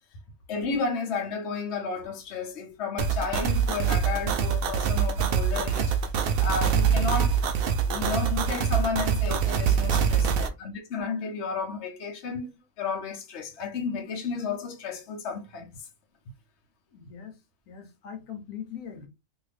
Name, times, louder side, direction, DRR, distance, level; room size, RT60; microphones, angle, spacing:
voice 1, 0.5-6.0 6.4-7.4 7.9-15.9, left 4 dB, 55° left, 1.1 m, -32 dB
sound 1, 3.0-10.5, right 7 dB, 90° right, 0.5 m, -24 dB
voice 2, 10.2-10.5 16.9-17.4 17.7-19.1, left 8 dB, 85° left, 1.3 m, -41 dB
2.8 x 2.6 x 3.2 m
omnidirectional pair, 1.5 m